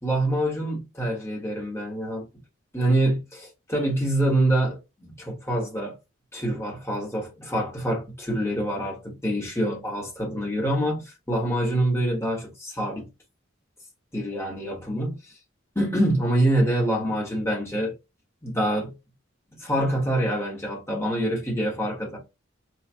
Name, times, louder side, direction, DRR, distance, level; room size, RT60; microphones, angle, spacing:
voice 1, 0.0-2.2 2.7-5.9 6.3-13.1 14.1-15.3 15.7-17.9 18.4-18.9 19.6-22.2, right 1 dB, 15° left, 1.1 m, -26 dB
4.5 x 2.4 x 2.5 m
head